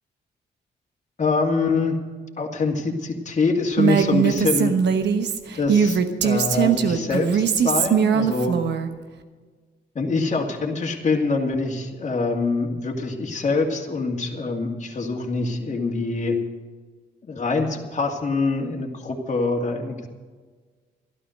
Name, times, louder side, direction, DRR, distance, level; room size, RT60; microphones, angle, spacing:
voice 1, 1.2-1.9 2.4-4.8 5.5-8.6 9.9-16.4 17.2-20.1, left 3 dB, 40° left, 0 dB, 2.4 m, -24 dB
Female speech woman speaking, 3.8-8.9, right 7 dB, 70° right, 1.2 m, -20 dB
12.5 x 12.0 x 6.5 m, 1.4 s
cardioid pair, 70°, 19 cm